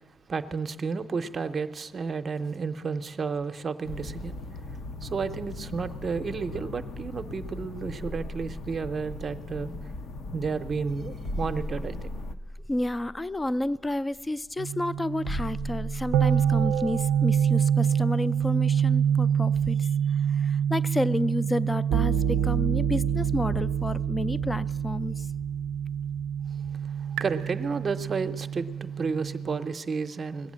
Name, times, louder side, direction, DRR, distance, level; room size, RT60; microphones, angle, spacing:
voice 1, 0.3-4.4 5.0-9.7 10.3-12.1 26.8-30.5, right 5 dB, 40° right, 0.6 m, -32 dB
sound 1, 3.8-12.3, left 2 dB, 60° left, 0.6 m, -39 dB
sound 2, 11.2-17.6, equal, 90° left, 2.3 m, -39 dB
voice 2, 12.7-19.9 20.3-25.3, left 1 dB, 15° left, 0.3 m, -30 dB
sound 3, 14.6-29.7, right 8 dB, 85° right, 0.4 m, -26 dB
20.0 x 8.2 x 7.4 m
cardioid pair, 95°, 0 cm